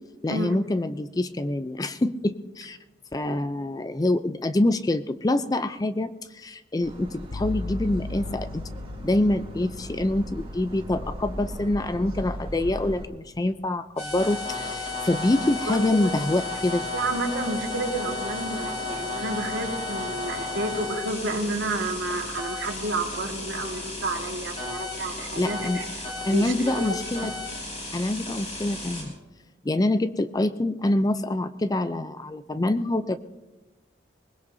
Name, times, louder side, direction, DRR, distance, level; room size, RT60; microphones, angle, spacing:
voice 1, 0.2-2.8 3.1-8.7 9.0-16.8 25.4-25.8 26.3-27.3 27.9-29.1 29.6-33.2, left 1 dB, 20° left, 12 dB, 0.4 m, -26 dB
sound 1, 6.8-13.1, equal, 30° right, 2.3 m, -38 dB
sound 2, 7.3-15.0, left 2 dB, 65° left, 0.7 m, -40 dB
sound 3, 14.0-29.0, left 2 dB, 35° left, 4.7 m, -33 dB
voice 2, 15.7-16.1 16.9-25.9 26.3-27.0 27.2-27.3, right 2 dB, 80° right, 3 dB, 1.8 m, -30 dB
22.5 x 20.0 x 2.7 m, 1.1 s
head